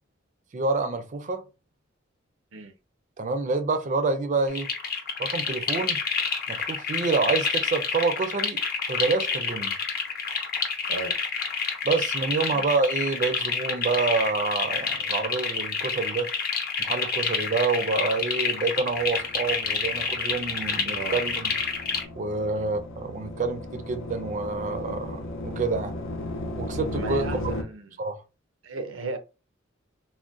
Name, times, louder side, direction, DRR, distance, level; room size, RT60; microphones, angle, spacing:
voice 1, 0.5-1.4 3.2-4.7 5.2-6.0 6.5-8.6 8.9-9.7 11.8-16.3 16.8-21.5 22.2-26.0 26.6-27.5 28.0-28.2, right 4 dB, 40° right, 0.4 m, -27 dB
sound 1, 4.5-22.0, left 5 dB, 50° left, 0.7 m, -28 dB
voice 2, 10.9-11.2 12.5-12.7 20.9-21.2 22.6-22.7 26.9-28.0 28.6-29.2, right 3 dB, 85° right, 0.6 m, -35 dB
sound 2, 18.9-27.6, left 1 dB, 85° left, 0.6 m, -36 dB
3.6 x 2.1 x 2.5 m
head